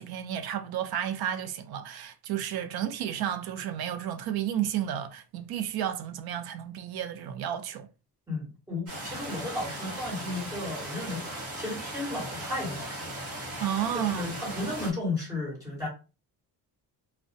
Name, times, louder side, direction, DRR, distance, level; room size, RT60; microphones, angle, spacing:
voice 1, 0.0-7.9 13.6-14.3, right 10 dB, 70° right, 0.5 m, -32 dB
voice 2, 8.3-11.2 11.6-13.1 14.1-15.9, left 2 dB, 10° right, 1.3 m, -34 dB
sound 1, 8.9-14.9, right 1 dB, 40° right, 0.9 m, -38 dB
2.4 x 2.1 x 2.5 m
cardioid pair, 145°, 39 cm